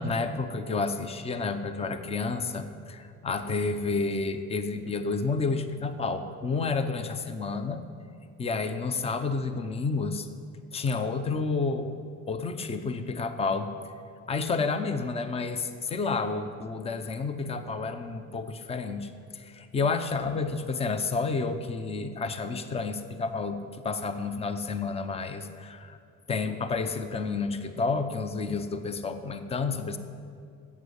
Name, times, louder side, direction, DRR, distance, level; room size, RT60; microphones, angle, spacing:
voice 1, 0.0-7.8 8.4-10.3 10.7-13.7 14.3-26.0 26.3-30.0, left 4 dB, 20° left, 9 dB, 0.8 m, -30 dB
13.5 x 8.6 x 8.2 m, 2.4 s
cardioid pair, 145°, 29 cm